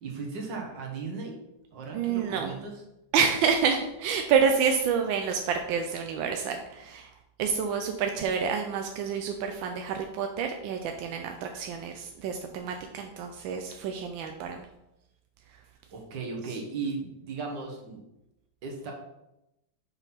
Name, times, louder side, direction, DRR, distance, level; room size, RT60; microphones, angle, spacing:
voice 1, 0.0-1.4 1.7-2.7 15.9-18.0 18.6-18.9, right 4 dB, 70° right, 1 dB, 1.9 m, -36 dB
voice 2, 1.9-2.6 3.1-7.1 7.4-14.7 15.5-15.6, right 6 dB, 90° right, 4 dB, 1.4 m, -28 dB
6.2 x 3.9 x 5.5 m, 0.90 s
omnidirectional pair, 2.0 m